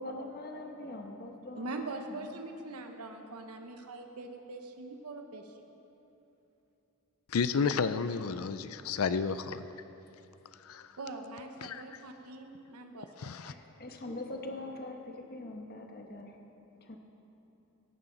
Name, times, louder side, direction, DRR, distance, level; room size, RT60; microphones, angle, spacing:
voice 1, 0.0-2.3 13.5-16.4 16.8-17.0, left 2 dB, 45° left, 3 dB, 1.2 m, -43 dB
voice 2, 1.6-5.5 11.0-13.6, right 2 dB, 90° right, 4 dB, 1.0 m, -43 dB
voice 3, 7.3-9.6 10.6-10.9 11.6-11.8 13.2-13.5, left 5 dB, 70° left, 12 dB, 0.5 m, -31 dB
17.0 x 15.0 x 4.0 m, 2.9 s
head